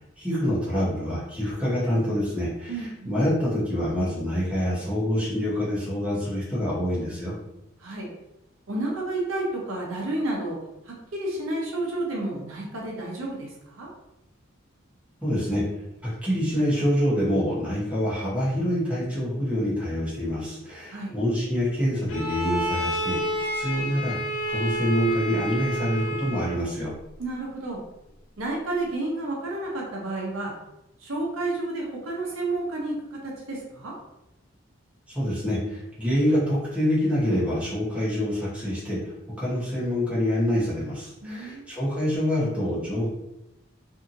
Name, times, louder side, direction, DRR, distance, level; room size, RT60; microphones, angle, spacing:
voice 1, 0.2-7.3 15.2-15.6 16.2-24.2 24.5-26.9 35.1-39.0 39.4-43.1, equal, 5° right, -8 dB, 0.9 m, -26 dB
voice 2, 2.7-3.1 7.8-8.1 8.7-10.6 10.9-13.9 20.9-21.1 27.2-27.8 28.4-30.5 31.0-33.9 41.2-41.6, right 2 dB, 75° right, -2 dB, 0.7 m, -31 dB
Bowed string instrument, 22.1-26.7, equal, 80° left, 0.6 m, -29 dB
2.7 x 2.6 x 2.6 m, 0.89 s
head